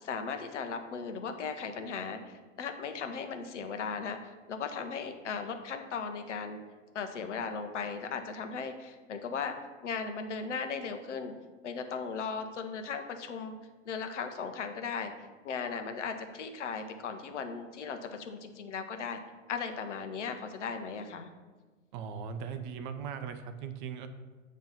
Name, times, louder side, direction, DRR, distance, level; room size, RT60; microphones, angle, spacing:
voice 1, 0.0-6.6 6.9-9.5 9.8-11.3 11.6-13.6 13.9-15.1 15.4-19.2 19.5-21.3, left 5 dB, 65° left, 7 dB, 0.9 m, -37 dB
voice 2, 21.9-24.1, right 7 dB, 40° right, 8 dB, 0.6 m, -39 dB
8.7 x 3.1 x 5.5 m, 1.3 s
figure-of-eight pair, 95°, 38 cm